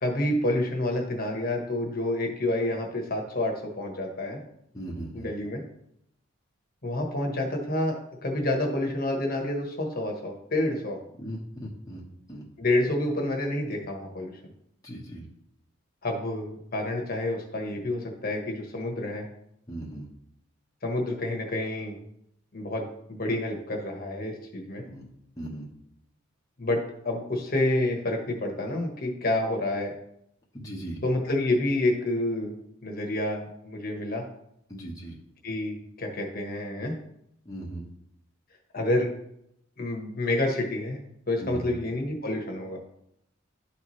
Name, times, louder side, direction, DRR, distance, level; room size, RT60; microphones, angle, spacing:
voice 1, 0.0-4.4 5.1-5.6 6.8-7.9 8.2-11.0 12.6-14.3 16.0-19.3 20.8-22.0 22.5-24.8 26.6-29.9 31.0-32.5 32.8-34.2 35.4-36.9 38.7-39.1 39.8-41.0 41.3-42.8, left 1 dB, 45° left, 1 dB, 1.2 m, -28 dB
voice 2, 4.7-5.3 11.2-12.0 12.3-12.4 14.8-15.2 19.7-20.1 24.9-25.1 25.4-25.7 30.5-31.0 34.7-35.2 37.4-37.8 41.4-41.8, right 1 dB, 15° left, -6 dB, 1.0 m, -38 dB
11.5 x 4.2 x 3.1 m, 0.76 s
head